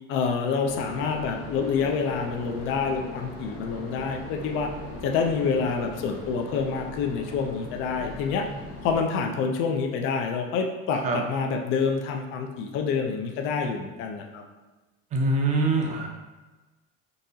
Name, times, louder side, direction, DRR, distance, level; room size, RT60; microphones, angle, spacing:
voice 1, 0.1-4.7 5.0-8.4 8.8-14.4, left 5 dB, 45° left, 3 dB, 0.4 m, -27 dB
sound 1, 0.6-9.0, left 1 dB, 85° left, 1.0 m, -40 dB
voice 2, 15.1-16.1, right 2 dB, 25° right, 1 dB, 0.4 m, -24 dB
3.8 x 2.8 x 2.6 m, 1.2 s
cardioid pair, 170°, 29 cm